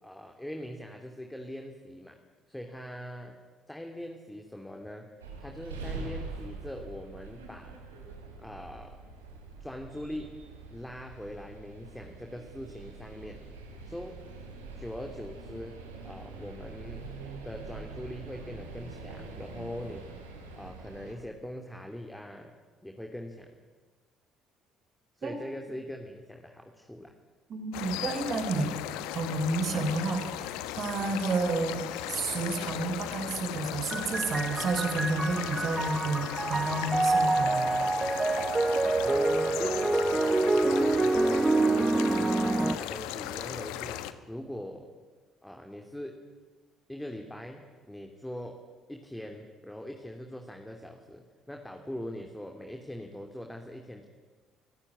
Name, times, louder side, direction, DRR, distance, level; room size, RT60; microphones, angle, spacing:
voice 1, 0.0-2.2 2.5-3.4 3.7-5.0 5.4-7.7 8.4-8.9 9.6-10.3 10.7-13.4 13.9-14.1 14.7-15.7 16.0-17.0 17.4-20.0 20.6-22.5 22.8-23.6 25.2-27.1 39.0-39.9 40.2-44.0 44.3-44.9 45.4-46.2 46.9-48.5 48.9-54.1, left 1 dB, 5° left, 3 dB, 3.0 m, -41 dB
sound 1, 5.2-21.1, right 3 dB, 85° right, 3.9 m, -44 dB
voice 2, 27.5-28.7 29.1-37.8, right 3 dB, 50° right, 6 dB, 4.1 m, -31 dB
sound 2, 27.7-44.1, left 13 dB, 70° left, 1.2 m, -37 dB
sound 3, 33.9-42.8, right 2 dB, 20° right, 0.9 m, -27 dB
28.5 x 16.5 x 9.9 m, 1.4 s
figure-of-eight pair, 50°, 0 cm